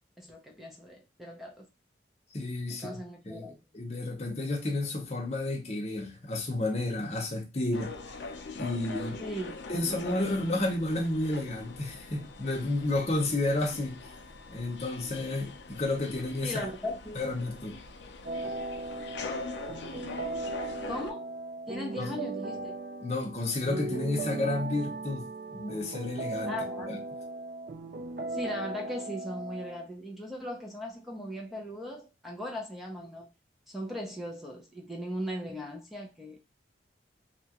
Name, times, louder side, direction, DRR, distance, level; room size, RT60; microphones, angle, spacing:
voice 1, 0.2-1.7 2.8-3.6 9.2-10.1 16.4-17.2 20.9-21.3 21.7-22.7 26.4-27.1 28.3-33.3 33.7-36.4, equal, ahead, 0.6 m, -38 dB
voice 2, 2.3-2.9 3.3-8.1 8.5-9.2 9.7-14.1 14.5-16.7 17.1-17.7 22.0-22.1 23.0-26.6 26.9-27.0, left 2 dB, 35° left, 0.8 m, -31 dB
sound 1, 7.7-21.1, left 3 dB, 70° left, 0.5 m, -43 dB
sound 2, 18.3-29.9, right 2 dB, 55° right, 0.4 m, -37 dB
2.8 x 2.4 x 2.8 m
head